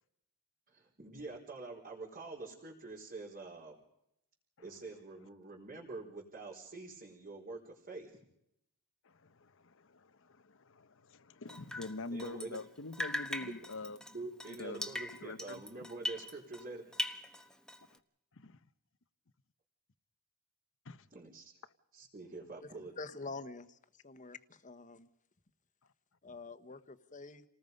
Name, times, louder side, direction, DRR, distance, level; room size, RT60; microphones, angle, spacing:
voice 1, 0.7-3.8 4.6-8.2 12.1-12.6 13.4-13.5 14.1-16.8 21.1-21.5 21.9-23.0, right 3 dB, 40° right, -5 dB, 4.5 m, -46 dB
voice 2, 9.0-14.0 14.5-14.9 15.2-15.6 17.9-18.0 18.4-18.6 20.9-21.1, left 2 dB, 65° left, 13 dB, 1.0 m, -45 dB
Drip, 11.5-12.7 12.9-16.7 16.9-18.0, left 1 dB, 5° left, 1.3 m, -41 dB
voice 3, 23.0-23.8 24.0-25.1 26.2-27.4, left 3 dB, 35° left, 11 dB, 1.3 m, -46 dB
29.0 x 19.5 x 5.4 m, 0.79 s
head